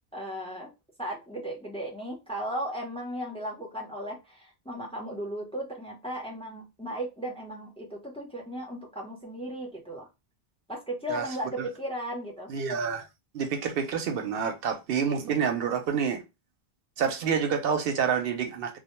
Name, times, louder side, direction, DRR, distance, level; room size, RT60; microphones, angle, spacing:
voice 1, 0.1-0.7 1.0-10.1 10.7-12.5, equal, 5° left, 0.5 m, -36 dB
voice 2, 12.5-13.0 13.3-16.2 17.0-18.8, right 6 dB, 70° right, 0.7 m, -28 dB
2.1 x 2.1 x 2.8 m
omnidirectional pair, 1.0 m